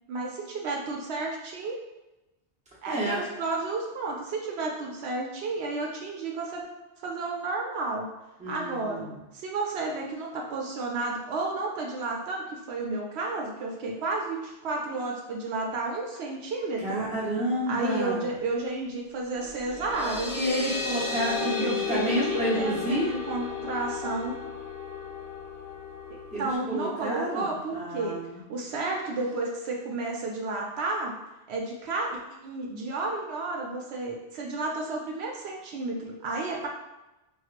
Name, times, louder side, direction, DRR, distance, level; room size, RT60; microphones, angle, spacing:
voice 1, 0.1-1.8 2.8-6.6 7.0-8.1 8.5-9.1 9.3-17.1 17.7-20.3 21.4-24.4 26.1-28.2 28.5-31.2 31.5-36.7, right 3 dB, 75° right, -1 dB, 0.8 m, -32 dB
voice 2, 2.9-3.2 8.4-9.1 16.8-18.3 20.3-23.1 26.3-28.4, right 1 dB, 5° right, -7 dB, 0.8 m, -30 dB
sound 1, 19.4-26.6, left 6 dB, 50° left, 0.9 m, -34 dB
4.2 x 2.3 x 2.4 m, 1.0 s
omnidirectional pair, 1.1 m